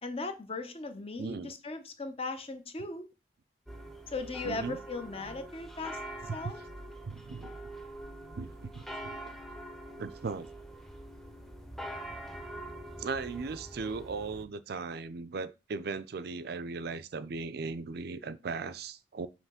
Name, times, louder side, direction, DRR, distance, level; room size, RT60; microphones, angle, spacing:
voice 1, 0.0-3.1 4.1-6.0 6.3-6.6, left 3 dB, 35° left, 0.8 m, -38 dB
voice 2, 1.2-1.5 4.4-4.8 6.3-6.5 7.1-7.5 8.4-9.3 10.0-10.5 13.0-19.3, right 4 dB, 60° right, 0.4 m, -38 dB
sound 1, 3.7-14.4, right 1 dB, ahead, 0.8 m, -44 dB
5.7 x 3.1 x 5.7 m
head